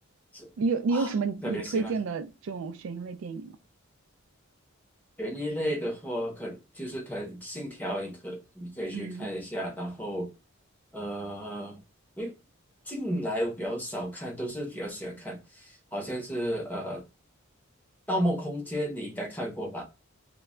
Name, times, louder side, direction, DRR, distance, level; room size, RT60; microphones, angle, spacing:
voice 1, 0.6-3.6 8.9-9.3, right 4 dB, 65° right, 0.3 m, -30 dB
voice 2, 1.4-1.9 5.2-10.3 10.9-11.8 12.2-12.3 12.9-17.0 18.1-19.8, equal, 10° left, 0.6 m, -33 dB
2.1 x 2.1 x 3.5 m
head